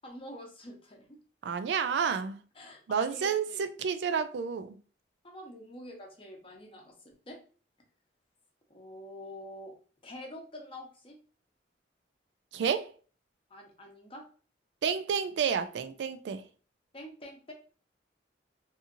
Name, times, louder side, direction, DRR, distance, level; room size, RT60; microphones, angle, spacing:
voice 1, 0.0-1.2 2.5-3.7 5.2-7.4 8.7-9.7 10.0-11.2 13.5-14.2 16.9-17.5, left 1 dB, 30° left, 0.7 m, -46 dB
voice 2, 1.4-2.4 2.9-4.8 12.5-12.9 14.8-16.4, right 6 dB, 70° right, 0.3 m, -30 dB
2.8 x 2.6 x 2.5 m
head